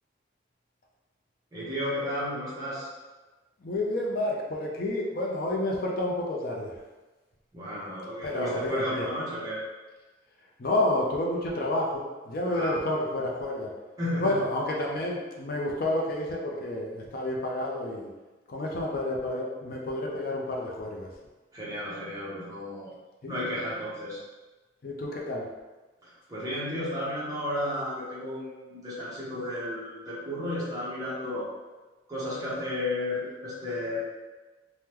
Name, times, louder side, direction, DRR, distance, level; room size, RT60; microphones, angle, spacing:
voice 1, 1.5-2.9 7.5-9.6 12.5-12.7 14.0-14.4 21.5-22.9 23.3-24.2 26.0-31.5 32.1-34.0, left 1 dB, 20° right, -8 dB, 0.9 m, -33 dB
voice 2, 3.6-6.7 8.2-9.1 10.6-13.7 14.2-18.1 18.5-21.1 23.2-23.4 24.8-25.5, left 1 dB, 50° left, -2 dB, 0.5 m, -30 dB
3.6 x 2.1 x 2.9 m, 1.2 s
head